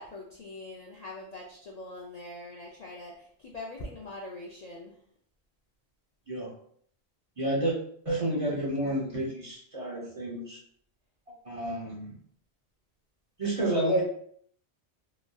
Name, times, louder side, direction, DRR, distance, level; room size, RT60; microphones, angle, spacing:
voice 1, 0.0-4.9, left 2 dB, 55° left, -3 dB, 0.4 m, -43 dB
voice 2, 7.4-7.8 8.0-10.6 11.4-12.1 13.4-14.0, right 1 dB, 40° right, -3 dB, 0.6 m, -30 dB
3.0 x 2.5 x 2.2 m, 0.62 s
omnidirectional pair, 1.1 m